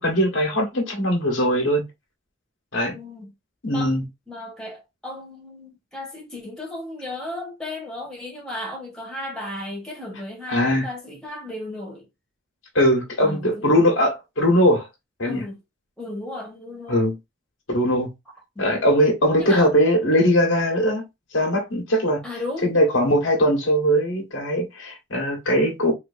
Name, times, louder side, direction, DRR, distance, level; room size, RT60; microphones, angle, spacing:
voice 1, 0.0-1.8 2.7-3.0 3.6-4.0 10.5-10.9 12.7-14.9 15.2-15.4 16.9-17.1 17.7-18.1 18.6-21.1 21.3-22.2 22.6-25.9, equal, 70° left, 1.5 m, -20 dB
voice 2, 2.9-3.3 3.7-3.9 4.3-12.1 13.2-13.8 15.2-15.6 16.0-17.0 18.5-18.7 19.4-19.7 22.2-22.7, left 1 dB, 5° left, 1.6 m, -34 dB
3.9 x 3.1 x 2.7 m
head